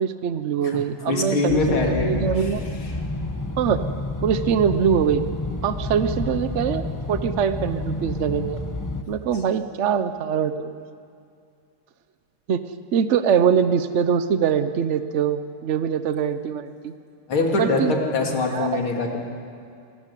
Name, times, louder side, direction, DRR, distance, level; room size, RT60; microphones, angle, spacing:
voice 1, 0.0-2.6 3.6-3.8 4.2-5.2 5.6-8.6 9.1-10.8 12.5-12.6 12.9-16.9 17.5-18.0 18.5-18.7, right 7 dB, 70° right, 10 dB, 0.6 m, -23 dB
voice 2, 1.1-2.5 17.3-19.2, left 3 dB, 70° left, 1 dB, 3.6 m, -23 dB
sound 1, 1.5-9.0, left 2 dB, 30° left, 0.3 m, -29 dB
27.0 x 15.0 x 10.0 m, 2.4 s
omnidirectional pair, 2.3 m